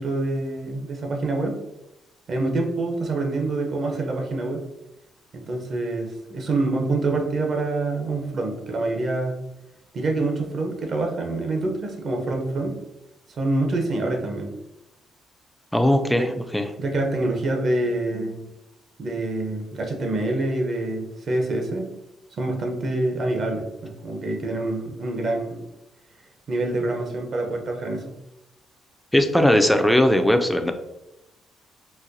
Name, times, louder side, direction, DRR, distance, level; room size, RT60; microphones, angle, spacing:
voice 1, 0.0-1.6 2.3-4.6 5.3-9.4 9.9-12.8 13.3-14.5 16.1-16.3 16.8-18.5 19.0-21.9 22.4-25.6 26.5-28.2, right 2 dB, 55° right, 2 dB, 0.7 m, -26 dB
voice 2, 15.7-16.3 16.5-16.7 29.1-30.7, left 1 dB, 5° left, 6 dB, 0.4 m, -18 dB
4.0 x 2.2 x 2.6 m, 0.89 s
cardioid pair, 90°, 0 cm